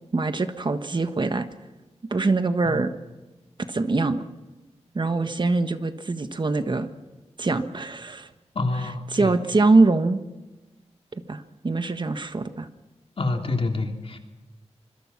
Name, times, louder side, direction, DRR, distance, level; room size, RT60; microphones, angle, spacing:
voice 1, 0.1-1.5 2.1-2.9 3.7-4.3 4.9-6.9 7.4-8.3 9.1-10.2 11.1-12.7, right 3 dB, 40° right, 9 dB, 1.5 m, -23 dB
voice 2, 8.5-9.3 13.2-14.2, left 3 dB, 55° left, 4 dB, 3.3 m, -27 dB
25.5 x 22.0 x 6.1 m, 1.1 s
wide cardioid pair, 95°, 12 cm